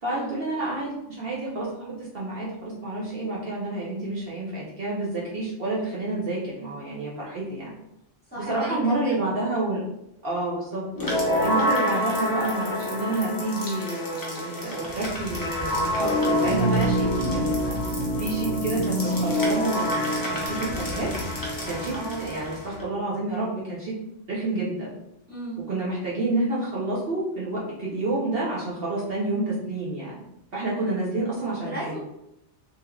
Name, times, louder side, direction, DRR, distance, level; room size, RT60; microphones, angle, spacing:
voice 1, 0.0-7.7 8.3-9.8 10.2-10.8 11.4-17.7 18.2-21.1 21.6-23.9 24.3-24.9 25.7-30.2 30.5-32.0, right 2 dB, 55° right, -6 dB, 0.9 m, -29 dB
voice 2, 8.3-9.2 20.5-20.8 21.9-22.3 25.3-25.6 31.6-32.0, right 1 dB, 10° left, -10 dB, 1.2 m, -34 dB
sound 1, 10.9-22.8, equal, 25° left, 0.5 m, -26 dB
3.4 x 3.1 x 2.3 m, 0.86 s
omnidirectional pair, 1.2 m